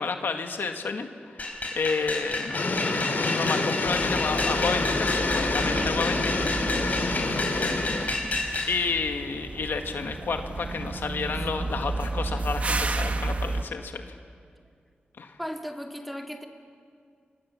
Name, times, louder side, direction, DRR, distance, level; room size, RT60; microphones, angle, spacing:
voice 1, 0.0-2.6 3.2-6.5 7.1-7.8 8.3-14.2 15.2-15.4, left 4 dB, 80° left, 5 dB, 1.9 m, -31 dB
sound 1, 1.4-8.7, left 2 dB, 45° left, 5.4 m, -31 dB
sound 2, 2.5-8.1, left 3 dB, 65° left, 2.9 m, -27 dB
sound 3, 3.8-13.7, right 2 dB, 40° right, 1.3 m, -33 dB
voice 2, 7.1-7.7 11.3-11.5 15.4-16.5, equal, ahead, 2 dB, 2.3 m, -38 dB
29.0 x 24.5 x 7.4 m, 2.2 s
wide cardioid pair, 105°, 4 cm